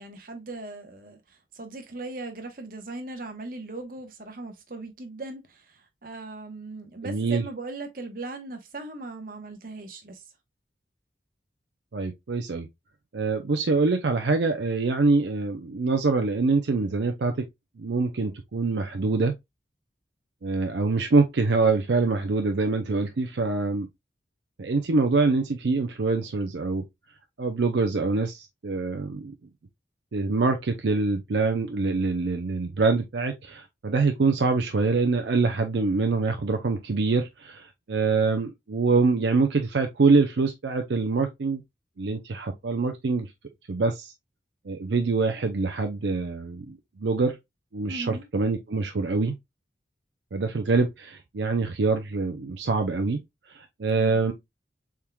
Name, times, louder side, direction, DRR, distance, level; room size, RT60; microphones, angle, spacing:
voice 1, 0.0-10.3 47.9-48.3 54.0-54.2, right 2 dB, 50° right, 0.9 m, -39 dB
voice 2, 7.0-7.4 11.9-12.7 13.1-17.3 17.8-19.3 20.4-23.9 24.6-26.8 27.4-29.3 30.1-41.6 42.0-43.3 43.7-44.1 44.7-47.4 47.7-49.4 50.3-53.2 53.5-54.3, right 3 dB, 75° right, 0.5 m, -25 dB
4.5 x 3.5 x 2.2 m
head